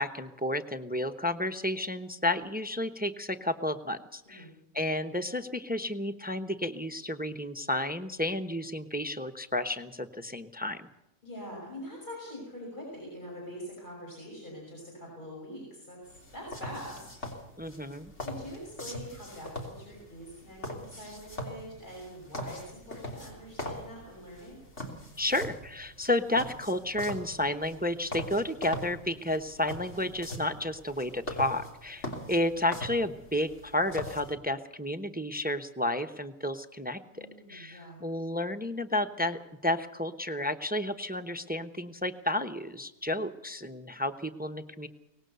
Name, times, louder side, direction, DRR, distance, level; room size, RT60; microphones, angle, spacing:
voice 1, 0.0-4.5 4.7-10.9 17.6-18.1 25.2-44.9, left 1 dB, 10° right, 9 dB, 0.7 m, -31 dB
voice 2, 11.2-16.0 16.3-17.2 18.2-24.6 37.1-38.0, equal, 40° left, -3 dB, 6.3 m, -44 dB
sound 1, 16.0-34.3, left 1 dB, 60° left, 3.5 m, -42 dB
23.5 x 19.0 x 6.8 m, 0.88 s
omnidirectional pair, 1.3 m